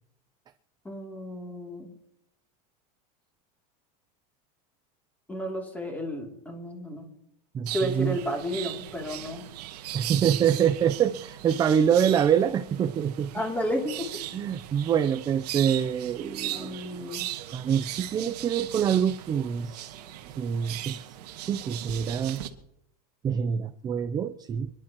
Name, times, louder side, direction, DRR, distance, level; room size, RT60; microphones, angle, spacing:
voice 1, 0.8-1.9 5.3-7.1 7.7-9.5 13.3-14.1 16.2-17.3, equal, 10° left, 1 dB, 2.9 m, -32 dB
voice 2, 7.5-8.2 9.9-13.3 14.3-17.1 17.5-20.0 20.4-21.1 21.4-22.4 23.2-24.7, right 8 dB, 20° right, 10 dB, 0.5 m, -25 dB
sound 1, 7.7-22.5, right 14 dB, 85° right, 1.6 m, -38 dB
27.0 x 11.0 x 3.0 m, 0.79 s
supercardioid pair, 150°, 20 cm